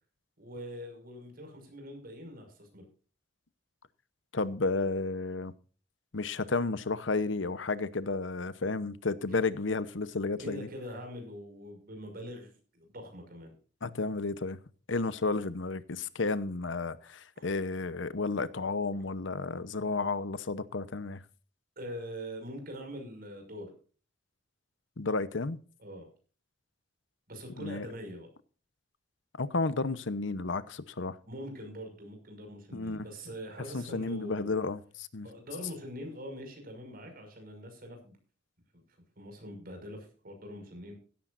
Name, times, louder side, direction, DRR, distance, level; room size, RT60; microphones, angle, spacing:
voice 1, 0.4-2.8 9.3-9.5 10.4-13.5 17.4-17.5 18.9-19.0 21.8-23.7 25.8-26.1 27.3-28.3 31.3-34.5 35.2-38.2 39.2-40.9, equal, 50° right, 5.9 m, -43 dB
voice 2, 4.3-5.5 6.1-10.7 13.8-14.6 14.9-21.2 25.0-25.6 27.6-27.9 29.4-31.2 32.7-33.1 33.7-35.3, left 3 dB, 80° left, 0.9 m, -32 dB
16.5 x 13.5 x 2.6 m
head